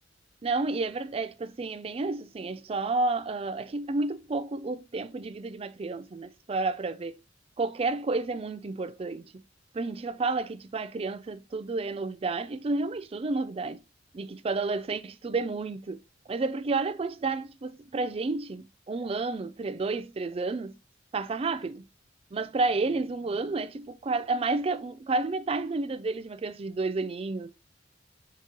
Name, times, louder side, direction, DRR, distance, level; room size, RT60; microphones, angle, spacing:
voice 1, 0.4-7.2 7.6-9.4 9.7-13.8 14.1-16.0 16.3-20.8 21.1-21.9 22.3-27.5, right 3 dB, 30° right, 0.4 m, -31 dB
5.9 x 3.0 x 2.9 m
head